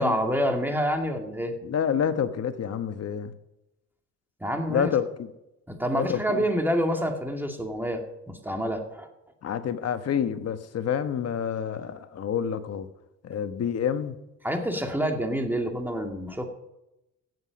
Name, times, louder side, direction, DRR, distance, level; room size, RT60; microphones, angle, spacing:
voice 1, 0.0-1.5 4.4-4.9 5.7-8.0 8.3-9.1 14.4-16.5, equal, 5° right, 3 dB, 2.4 m, -27 dB
voice 2, 1.6-3.3 4.7-5.3 5.9-6.4 9.4-12.9 13.2-14.1, left 8 dB, 55° left, 9 dB, 1.2 m, -28 dB
16.0 x 7.9 x 5.3 m, 0.91 s
cardioid pair, 90°, 30 cm